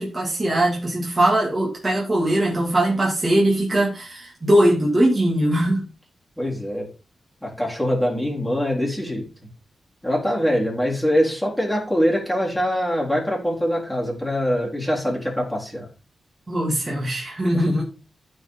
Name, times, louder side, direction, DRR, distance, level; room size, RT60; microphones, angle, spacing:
voice 1, 0.0-5.8 16.5-17.8, right 1 dB, 25° right, -3 dB, 2.5 m, -20 dB
voice 2, 6.4-6.9 7.4-9.3 10.0-15.9 17.5-17.8, equal, ahead, -3 dB, 3.8 m, -23 dB
14.0 x 4.8 x 3.8 m, 0.32 s
wide cardioid pair, 135°, 0 cm